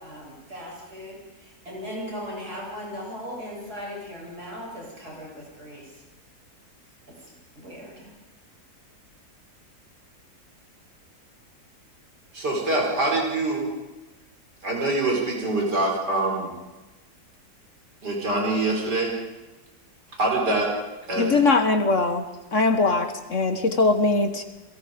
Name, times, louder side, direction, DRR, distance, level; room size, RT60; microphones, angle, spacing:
voice 1, 0.0-5.9 7.6-8.1, equal, 70° right, -3 dB, 8.7 m, -38 dB
voice 2, 12.3-13.7 14.6-16.5 18.0-19.1 20.2-20.7 21.1-21.4, right 2 dB, 90° right, 0 dB, 5.2 m, -24 dB
voice 3, 21.2-22.2 22.5-24.4, left 3 dB, 50° left, 7 dB, 1.7 m, -21 dB
29.5 x 22.0 x 5.2 m, 1.1 s
omnidirectional pair, 1.7 m